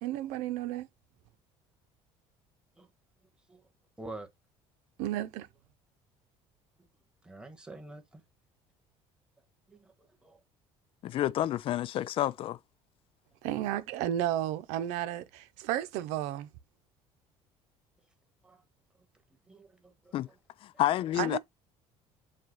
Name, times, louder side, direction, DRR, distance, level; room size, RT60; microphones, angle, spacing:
voice 1, 0.0-0.9 5.0-5.5 13.4-16.5 21.2-21.4, right 12 dB, 85° right, 1.0 m, -32 dB
voice 2, 4.0-4.3 7.2-8.2 9.7-9.9 10.2-10.4 18.4-18.6 19.5-20.2, right 2 dB, 5° right, 1.6 m, -47 dB
voice 3, 11.0-12.6 20.1-20.3 20.6-21.4, left 13 dB, 50° left, 0.4 m, -29 dB
7.6 x 2.6 x 5.4 m
cardioid pair, 120°, 12 cm